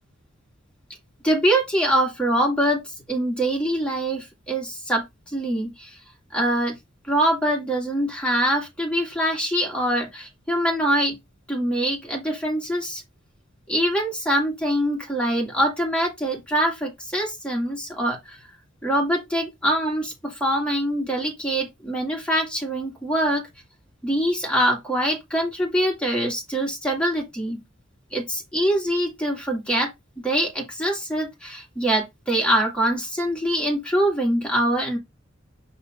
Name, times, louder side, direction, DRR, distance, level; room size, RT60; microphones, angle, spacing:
voice 1, 1.2-5.0 5.3-5.9 6.3-6.7 7.1-11.2 11.5-13.0 13.7-18.4 18.8-23.5 24.0-27.6 28.1-29.9 30.2-35.0, right 1 dB, 5° left, 2.4 m, -24 dB
6.1 x 5.9 x 2.6 m
head